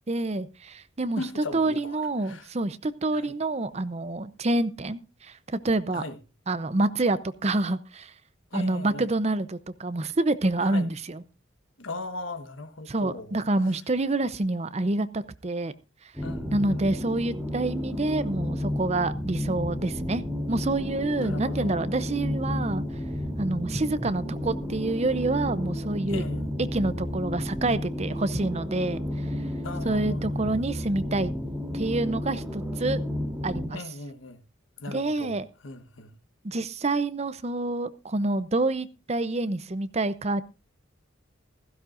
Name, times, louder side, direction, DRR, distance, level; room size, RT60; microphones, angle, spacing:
voice 1, 0.1-6.0 6.5-8.1 8.5-11.2 12.9-15.7 16.5-20.2 20.5-22.8 23.4-26.2 26.6-29.0 29.8-31.3 31.7-33.0 33.4-33.8 34.9-35.5 36.4-40.4, right 2 dB, 35° right, 0.6 m, -27 dB
voice 2, 1.2-2.5 3.1-3.4 5.9-6.2 8.5-9.1 10.6-10.9 11.8-13.4 16.2-17.0 21.2-21.9 26.1-26.5 29.6-30.6 33.7-34.4 34.8-36.2, left 2 dB, 75° left, 1.3 m, -39 dB
sound 1, 16.1-33.7, left 1 dB, 10° right, 3.2 m, -32 dB
16.0 x 15.5 x 2.5 m
head